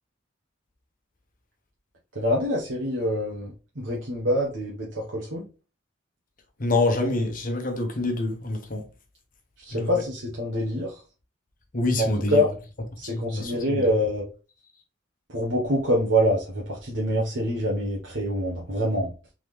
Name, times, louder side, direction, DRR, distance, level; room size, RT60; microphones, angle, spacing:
voice 1, 2.1-5.5 9.6-11.0 12.0-12.5 13.0-14.2 15.3-19.1, equal, 65° right, 1.0 m, -25 dB
voice 2, 6.6-8.8 9.7-10.0 11.7-12.4 13.1-13.8, left 2 dB, 45° left, 1.0 m, -26 dB
3.7 x 3.5 x 3.2 m
head